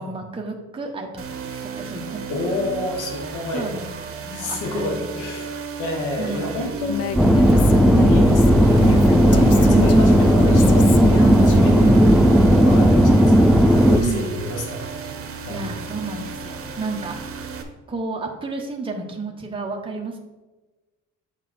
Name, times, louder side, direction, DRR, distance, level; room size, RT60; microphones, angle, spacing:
voice 1, 0.0-2.2 3.5-5.1 6.2-6.6 7.8-8.3 9.5-10.3 13.9-14.3 15.5-17.2 17.9-20.2, right 3 dB, 15° right, 0 dB, 1.0 m, -31 dB
sound 1, 1.2-17.6, right 5 dB, 45° right, 1.1 m, -34 dB
voice 2, 2.3-3.8 4.3-5.5 5.8-7.3 8.1-11.9 12.6-14.9 15.4-15.7, left 2 dB, 85° left, 2 dB, 1.3 m, -29 dB
Female speech woman speaking, 6.9-12.0, left 7 dB, 55° left, 0.6 m, -30 dB
sound 2, 7.2-14.0, equal, ahead, 0.5 m, -14 dB
6.4 x 5.2 x 4.2 m, 1.2 s
cardioid pair, 90°, 30 cm